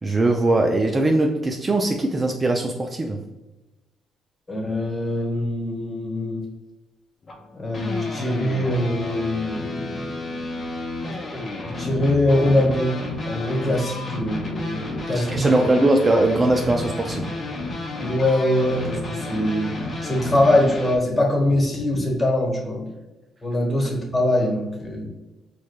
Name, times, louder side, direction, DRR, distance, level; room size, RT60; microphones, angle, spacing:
voice 1, 0.0-3.2 15.1-17.3 23.8-23.9, right 2 dB, 25° right, 2 dB, 0.4 m, -20 dB
voice 2, 4.5-6.4 7.5-10.5 11.6-15.5 18.0-19.7 20.0-22.9 23.4-25.1, left 1 dB, 20° left, -1 dB, 1.1 m, -23 dB
sound 1, 7.2-21.0, left 2 dB, 45° left, 0.6 m, -31 dB
4.7 x 2.2 x 2.2 m, 1.0 s
cardioid pair, 90°, 0 cm